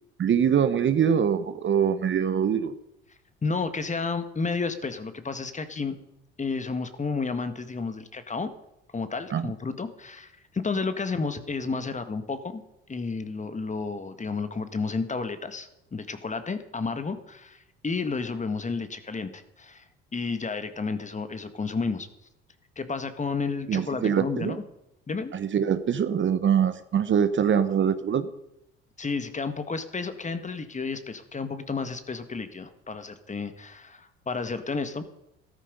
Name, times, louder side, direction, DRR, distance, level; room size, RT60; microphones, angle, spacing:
voice 1, 0.2-2.7 9.3-9.5 23.7-24.6 25.3-28.3, right 8 dB, 40° right, 11 dB, 1.1 m, -24 dB
voice 2, 3.4-6.0 6.4-8.5 8.9-12.6 12.9-19.9 20.1-22.1 22.8-24.6 25.1-25.3 29.0-35.0, left 4 dB, 25° left, 10 dB, 1.7 m, -31 dB
14.0 x 13.0 x 5.3 m, 0.82 s
hypercardioid pair, 60°, 29 cm